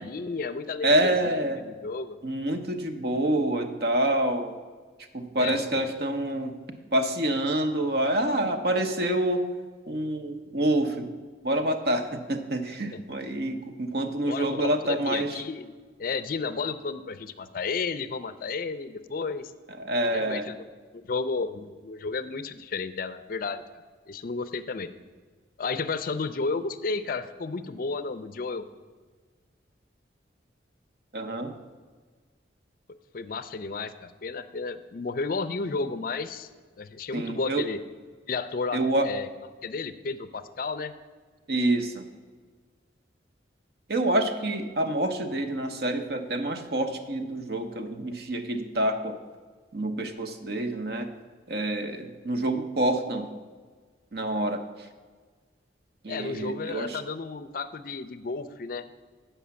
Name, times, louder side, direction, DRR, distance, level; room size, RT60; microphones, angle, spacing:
voice 1, 0.0-2.2 5.4-5.8 12.9-13.0 14.3-15.7 16.0-19.5 20.1-20.6 20.9-23.6 24.1-24.9 25.6-28.6 33.1-36.5 36.8-37.8 38.3-39.3 39.6-40.9 56.1-58.8, left 4 dB, 50° left, 11 dB, 0.4 m, -32 dB
voice 2, 0.8-1.6 2.2-4.5 5.1-6.6 6.9-9.4 9.9-11.1 11.4-15.4 19.8-20.5 31.1-31.5 37.1-37.6 38.7-39.1 41.5-42.0 43.9-49.2 49.7-51.1 51.5-53.3 54.1-54.6 56.0-57.0, right 1 dB, 55° right, 7 dB, 0.8 m, -27 dB
8.4 x 5.6 x 6.9 m, 1.5 s
head